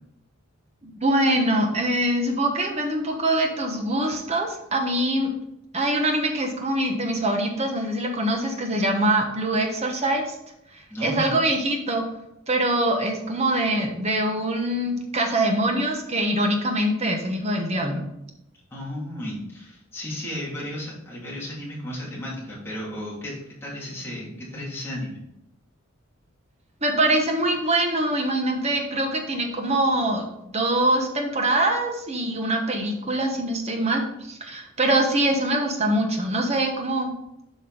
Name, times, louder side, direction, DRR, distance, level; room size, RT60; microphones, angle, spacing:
voice 1, 0.8-5.3 5.7-10.4 11.0-12.0 12.5-18.0 26.8-30.2 30.5-37.1, right 1 dB, 30° right, 3 dB, 1.1 m, -23 dB
voice 2, 10.9-11.4 18.7-23.3 23.6-25.2, left 1 dB, 10° left, -6 dB, 2.6 m, -34 dB
7.8 x 5.4 x 4.0 m, 0.83 s
head